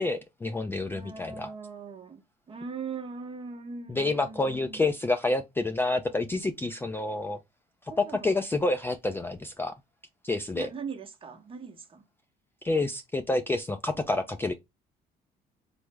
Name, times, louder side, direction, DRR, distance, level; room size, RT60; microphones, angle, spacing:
voice 1, 0.0-1.5 3.9-7.4 8.2-9.7 10.2-10.7 12.6-14.5, left 2 dB, 15° left, 0.3 m, -28 dB
voice 2, 0.9-4.9 7.9-8.3 10.5-12.0, right 5 dB, 30° right, 0.8 m, -40 dB
3.2 x 2.0 x 3.2 m
cardioid pair, 110°, 17 cm